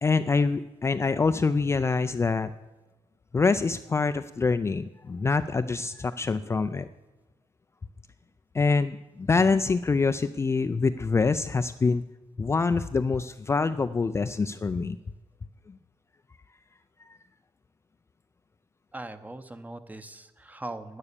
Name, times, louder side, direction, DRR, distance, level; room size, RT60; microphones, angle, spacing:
voice 1, 0.0-2.5 3.3-6.9 8.5-12.0 12.4-15.0 15.7-15.8, left 4 dB, 25° left, 10 dB, 0.4 m, -25 dB
voice 2, 18.9-21.0, right 2 dB, 15° right, 10 dB, 0.9 m, -40 dB
9.8 x 9.7 x 6.7 m, 1.1 s
cardioid pair, 95°, 11 cm